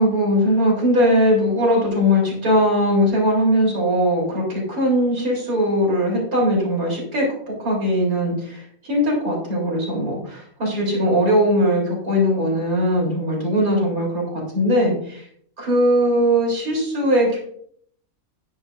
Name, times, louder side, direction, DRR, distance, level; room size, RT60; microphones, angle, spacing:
voice 1, 0.0-14.2 14.5-15.2 15.6-17.4, equal, 85° right, -3 dB, 4.1 m, -20 dB
11.0 x 9.5 x 2.6 m, 0.62 s
omnidirectional pair, 1.5 m